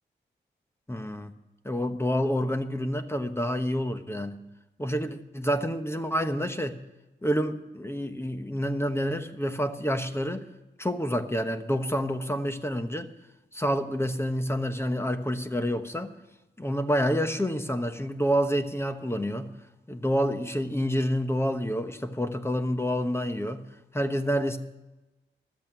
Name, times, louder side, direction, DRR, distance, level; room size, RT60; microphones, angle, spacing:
voice 1, 0.9-1.3 1.6-4.4 4.8-6.8 7.2-10.5 10.8-13.1 13.5-16.1 16.6-19.5 19.9-23.6 23.9-24.6, equal, 15° left, 8 dB, 1.1 m, -28 dB
12.5 x 8.0 x 9.0 m, 1.0 s
cardioid pair, 50°, 19 cm